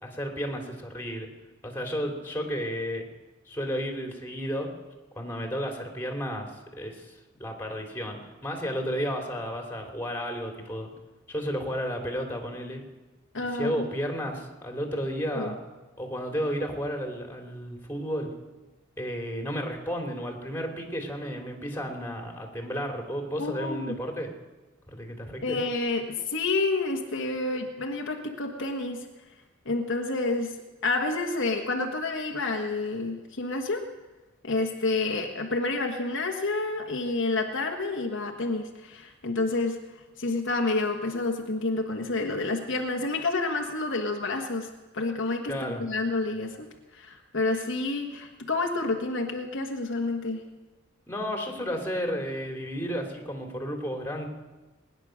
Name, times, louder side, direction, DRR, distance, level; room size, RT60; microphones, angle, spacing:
voice 1, 0.0-1.3 1.6-3.0 3.5-4.7 5.1-7.1 7.4-10.9 11.3-12.8 13.4-15.5 16.0-18.3 19.0-24.3 24.9-25.6 45.5-45.8 51.1-54.3, equal, 10° left, 2 dB, 2.9 m, -32 dB
voice 2, 13.3-13.9 15.3-15.5 23.4-24.0 25.4-29.1 29.6-30.5 30.8-33.8 34.4-39.8 40.2-46.7 46.9-50.4, left 3 dB, 65° left, 2 dB, 1.5 m, -29 dB
21.0 x 10.5 x 6.4 m, 1.2 s
head